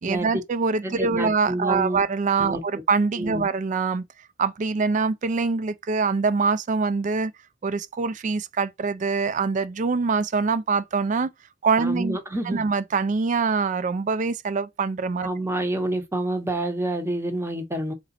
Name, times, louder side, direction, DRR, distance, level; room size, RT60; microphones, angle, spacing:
voice 1, 0.0-4.0 4.4-7.3 7.6-11.3 11.6-12.2 12.4-15.3, right 4 dB, 40° right, 0.4 m, -24 dB
voice 2, 0.8-2.0 2.4-2.6 3.2-3.5 11.8-12.7 15.2-17.9, right 1 dB, 15° right, 0.8 m, -28 dB
4.0 x 3.0 x 4.2 m
head